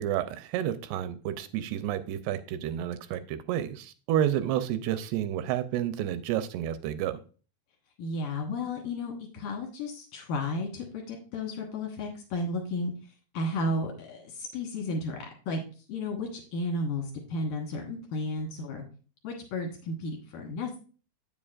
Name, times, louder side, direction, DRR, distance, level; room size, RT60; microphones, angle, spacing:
voice 1, 0.0-7.2, right 11 dB, 85° right, 11 dB, 2.5 m, -30 dB
voice 2, 8.0-12.9 13.3-15.6 15.9-18.8 19.2-20.8, left 2 dB, 65° left, 1 dB, 2.4 m, -33 dB
8.5 x 7.2 x 2.5 m, 0.37 s
omnidirectional pair, 4.7 m